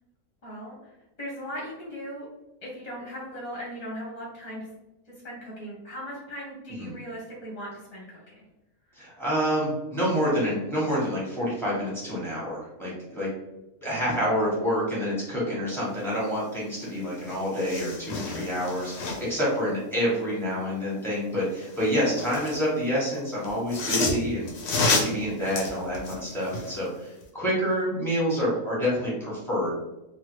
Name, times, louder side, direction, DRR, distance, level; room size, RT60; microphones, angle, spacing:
voice 1, 0.4-2.3 2.6-4.7 5.2-8.3 9.0-9.1, equal, 30° left, -4 dB, 0.8 m, -38 dB
voice 2, 9.0-13.3 13.8-29.8, equal, ahead, -7 dB, 1.2 m, -28 dB
sound 1, 16.8-16.9 17.2-19.4 21.6-22.6 23.4-26.8 27.2-27.3, left 3 dB, 60° left, 0.8 m, -30 dB
2.9 x 2.3 x 3.1 m, 0.97 s
omnidirectional pair, 1.5 m